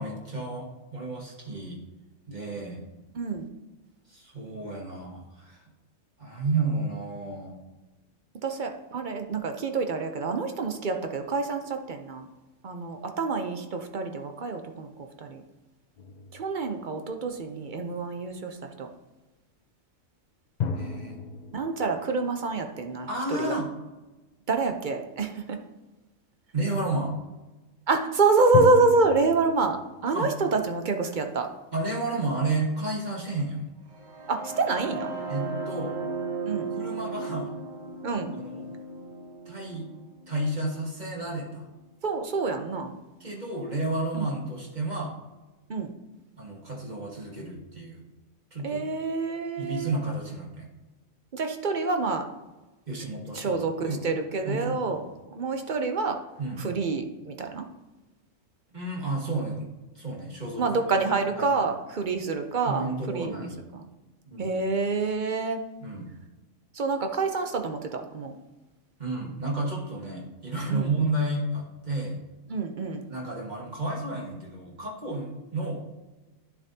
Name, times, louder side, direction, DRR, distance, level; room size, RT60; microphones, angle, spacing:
voice 1, 0.0-1.8 2.3-2.8 4.1-5.6 6.2-7.6 20.7-21.2 23.1-23.7 26.5-27.1 30.1-30.3 31.7-33.7 35.3-36.0 36.7-37.5 38.3-38.7 39.5-39.8 40.3-41.7 43.2-45.1 46.4-48.0 48.5-48.9 49.6-50.7 52.9-54.0 54.4-55.0 56.4-56.6 58.7-60.8 61.4-61.5 62.6-63.6 64.3-64.5 65.8-66.1 69.0-72.2 73.1-75.8, right 2 dB, 35° right, -2 dB, 1.6 m, -31 dB
voice 2, 3.1-3.5 8.4-12.3 12.6-14.9 15.2-15.4 16.3-18.9 21.5-23.6 24.5-25.6 27.9-31.5 34.3-35.1 36.4-36.7 38.0-38.3 42.0-43.0 44.1-44.3 45.7-45.9 48.6-49.9 51.3-52.2 52.9-53.0 53.3-55.0 55.3-56.2 56.6-57.6 60.6-63.5 63.7-63.9 64.4-65.6 66.7-68.3 70.7-71.1 72.5-73.1, right 3 dB, 50° right, 5 dB, 0.6 m, -27 dB
sound 1, 16.0-17.6 20.6-23.3 28.5-31.5, left 5 dB, 70° left, 0.4 m, -35 dB
sound 2, 33.9-41.8, right 4 dB, 85° right, 1.8 m, -36 dB
11.0 x 7.0 x 2.7 m, 1.1 s
omnidirectional pair, 1.4 m